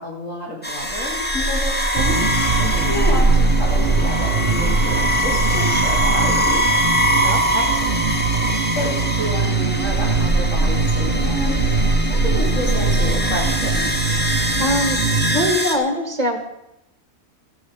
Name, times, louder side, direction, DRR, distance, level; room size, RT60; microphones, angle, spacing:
voice 1, 0.0-2.2 2.9-6.6 8.4-11.6 12.1-13.9, left 1 dB, 65° left, -2 dB, 4.0 m, -29 dB
sound 1, 0.6-15.8, right 1 dB, 5° left, 1.7 m, -21 dB
sound 2, 2.0-15.5, right 5 dB, 50° right, 0.9 m, -23 dB
voice 2, 2.6-2.9 7.2-7.7 14.6-15.0 15.3-16.4, equal, 30° right, 5 dB, 2.2 m, -23 dB
14.5 x 9.3 x 6.6 m, 0.86 s
omnidirectional pair, 1.4 m